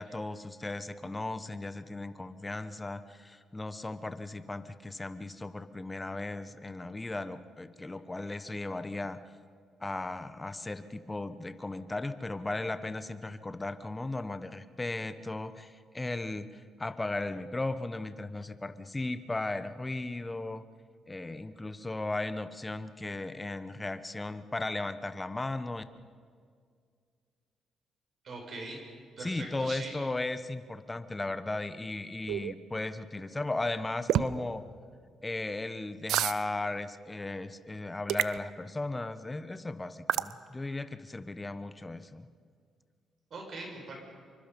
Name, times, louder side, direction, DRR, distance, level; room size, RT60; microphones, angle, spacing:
voice 1, 0.0-9.2 9.8-20.6 21.1-25.8 29.2-34.6 35.2-42.3, left 2 dB, 15° left, 11 dB, 1.0 m, -36 dB
voice 2, 28.2-28.8 29.2-29.9 43.3-44.0, right 2 dB, 55° right, 1 dB, 5.7 m, -41 dB
sound 1, 32.3-32.5 34.1-34.3 36.1-36.4 38.1-38.4 40.1-40.3, right 12 dB, 80° right, 0.5 m, -28 dB
26.5 x 24.0 x 5.4 m, 2.1 s
cardioid pair, 90°, 0 cm